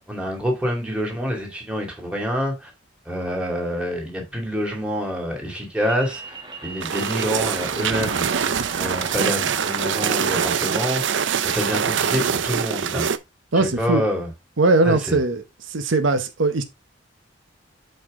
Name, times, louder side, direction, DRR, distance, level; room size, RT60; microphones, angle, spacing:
voice 1, 0.1-2.7 3.1-6.3 6.6-11.0 11.4-13.1 13.5-14.3 14.8-15.2, equal, 5° right, 2.5 m, -27 dB
sound 1, 5.8-11.0, right 3 dB, 25° right, 1.3 m, -38 dB
sound 2, 6.8-13.2, right 7 dB, 70° right, 0.5 m, -24 dB
voice 2, 13.5-14.0 14.6-16.6, right 3 dB, 90° right, 1.0 m, -20 dB
7.8 x 4.6 x 3.7 m
head